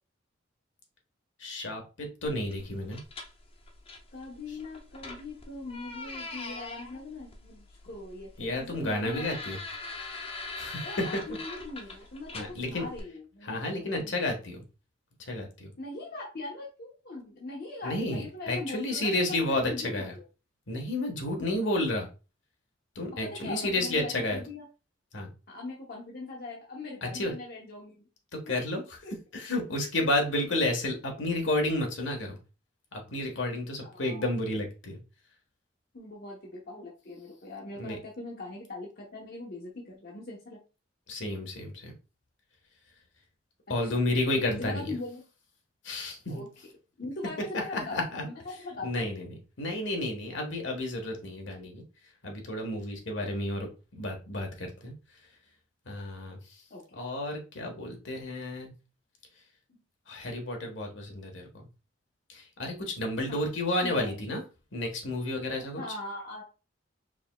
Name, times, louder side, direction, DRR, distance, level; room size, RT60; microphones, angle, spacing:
voice 1, 1.4-3.0 8.4-9.6 10.6-10.8 12.3-12.9 13.4-14.6 15.2-15.7 17.8-20.1 20.7-22.1 22.9-24.4 25.1-25.3 27.0-27.3 28.3-29.0 29.3-32.4 32.9-35.0 37.8-38.0 41.1-41.9 43.7-44.9 45.8-46.4 47.7-48.2 48.8-51.8 52.2-53.7 53.9-54.9 55.9-56.6 57.0-58.7 60.1-61.7 62.3-64.4 64.7-65.8, left 1 dB, 70° left, 2 dB, 1.2 m, -31 dB
sound 1, 2.3-13.0, left 3 dB, 30° left, 0.6 m, -43 dB
voice 2, 4.1-9.3 10.8-14.2 15.8-20.2 23.2-24.7 25.5-28.0 28.5-28.6 29.0-29.1 33.8-34.2 35.9-40.6 43.8-43.9 44.5-45.2 46.3-46.5 47.0-48.0 48.2-49.1 53.2-53.3 56.7-57.0 63.3-63.5 63.8-64.1 65.6-66.4, left 2 dB, 55° left, -2 dB, 0.9 m, -41 dB
4.9 x 3.5 x 2.2 m, 0.31 s
head